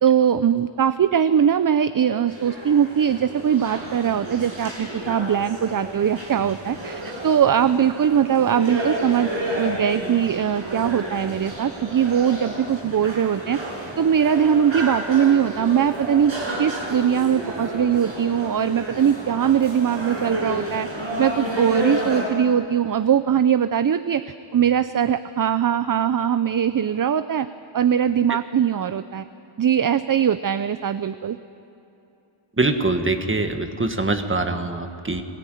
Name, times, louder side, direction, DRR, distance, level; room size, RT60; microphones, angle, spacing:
voice 1, 0.0-9.3 9.6-13.6 14.0-20.9 21.2-27.5 27.7-29.3 29.6-31.4, right 8 dB, 45° right, 13 dB, 0.6 m, -21 dB
sound 1, 2.3-22.2, right 1 dB, 65° right, 7.8 m, -31 dB
voice 2, 32.6-35.2, right 2 dB, 25° right, 6 dB, 1.7 m, -23 dB
23.5 x 18.0 x 9.2 m, 2.8 s
wide cardioid pair, 105°, 48 cm